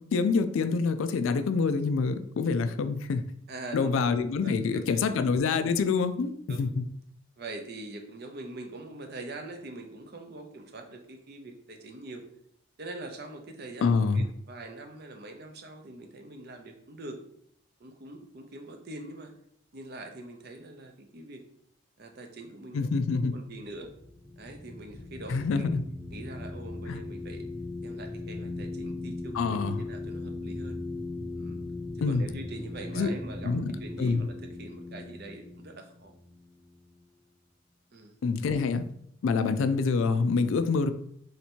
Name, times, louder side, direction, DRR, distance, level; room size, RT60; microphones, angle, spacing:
voice 1, 0.1-3.2 3.7-6.8 13.8-14.3 22.7-23.3 25.3-25.8 26.9-27.0 29.3-29.8 32.0-32.2 32.9-33.1 33.4-33.7 34.0-34.3 38.2-38.8 39.2-40.9, left 4 dB, 70° left, 9 dB, 0.3 m, -26 dB
voice 2, 3.5-3.9 4.4-5.0 6.5-6.8 7.4-12.2 12.8-17.2 17.8-19.3 19.7-21.4 22.0-23.9 24.4-25.8 26.1-27.4 27.8-30.8 31.4-31.6 32.0-36.1 37.9-38.2, right 2 dB, 50° right, 4 dB, 0.6 m, -43 dB
sound 1, 23.6-37.0, left 2 dB, 10° right, 0.9 m, -39 dB
3.2 x 2.8 x 4.4 m, 0.70 s
head